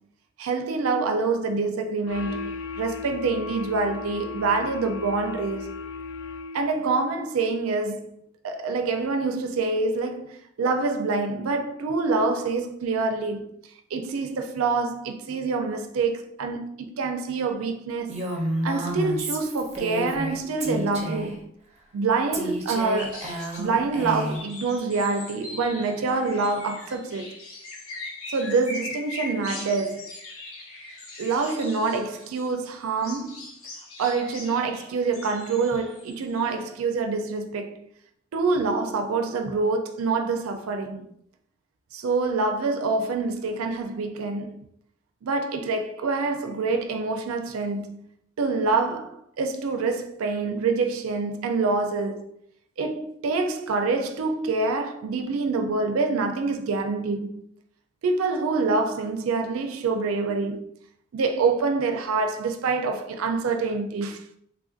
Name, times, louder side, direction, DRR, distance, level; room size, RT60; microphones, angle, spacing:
voice 1, 0.4-5.8 6.5-13.5 13.9-18.1 18.6-21.5 21.9-23.3 23.6-27.3 28.3-30.1 31.2-33.4 34.0-37.9 38.3-41.1 41.9-44.7 45.2-48.0 48.4-52.3 52.8-57.4 58.0-60.7 61.1-64.4, right 4 dB, 85° right, 0.4 m, -26 dB
sound 1, 2.1-6.9, left 4 dB, 65° left, 0.3 m, -36 dB
Female speech woman speaking, 18.1-20.3 20.6-21.4 22.3-24.4, right 1 dB, 30° right, 0.5 m, -30 dB
sound 2, 23.0-23.7 24.1-32.5 32.8-36.6, left 2 dB, 90° left, 0.7 m, -41 dB
3.2 x 2.5 x 2.4 m
head